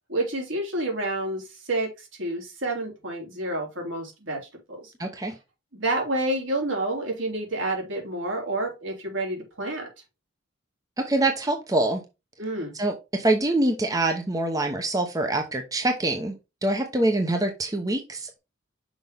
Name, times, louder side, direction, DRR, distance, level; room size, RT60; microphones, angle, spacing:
voice 1, 0.1-4.4 4.7-4.9 5.7-9.9 12.4-12.7, right 2 dB, 75° right, 0 dB, 3.4 m, -29 dB
voice 2, 5.0-5.3 11.0-12.0 12.7-16.3 16.6-18.4, right 2 dB, 15° right, 4 dB, 0.8 m, -25 dB
6.2 x 5.3 x 3.5 m, 0.25 s
head